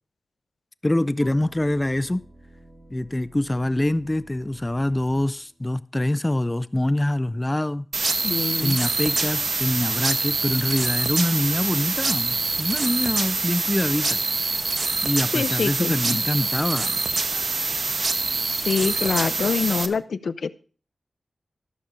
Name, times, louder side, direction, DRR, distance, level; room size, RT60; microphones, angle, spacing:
voice 1, 0.8-2.2 2.9-7.9 8.6-14.2 15.0-17.0, left 1 dB, 15° left, 0.4 m, -25 dB
sound 1, 1.2-5.8 9.3-13.6 17.3-20.0, equal, ahead, 3.0 m, -50 dB
sound 2, 7.9-19.9, right 3 dB, 55° right, 1.0 m, -25 dB
voice 2, 8.2-8.8 15.3-16.2 18.4-20.5, left 5 dB, 75° left, 0.6 m, -25 dB
13.5 x 7.0 x 5.0 m
wide cardioid pair, 75°, 0 cm